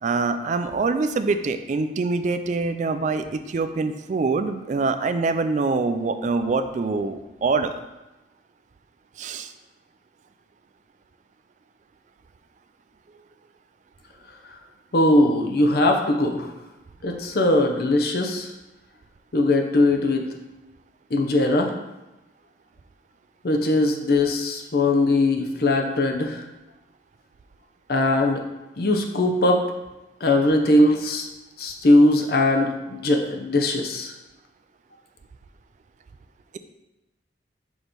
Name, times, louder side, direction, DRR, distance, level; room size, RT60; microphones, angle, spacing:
voice 1, 0.0-7.8 9.2-9.5, right 3 dB, 40° right, 9 dB, 0.3 m, -24 dB
voice 2, 14.9-16.5 17.0-18.5 19.3-20.3 21.1-21.7 23.4-26.4 27.9-28.4 28.8-29.6 30.2-31.3 31.6-34.1, left 1 dB, 60° left, 3 dB, 0.7 m, -20 dB
6.2 x 3.0 x 5.1 m, 1.0 s
head